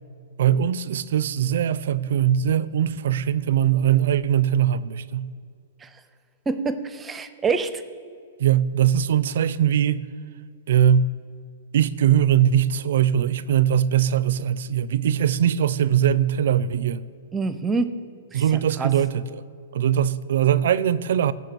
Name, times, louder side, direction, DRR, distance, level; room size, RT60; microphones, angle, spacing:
voice 1, 0.4-5.3 8.4-10.1 10.7-11.1 11.7-17.1 18.3-19.3 19.7-21.3, right 9 dB, 70° right, 0.5 m, -21 dB
voice 2, 6.5-7.8 17.3-17.9 18.3-18.9, right 4 dB, 15° right, 0.6 m, -26 dB
16.5 x 6.0 x 4.6 m
hypercardioid pair, 135°, 0 cm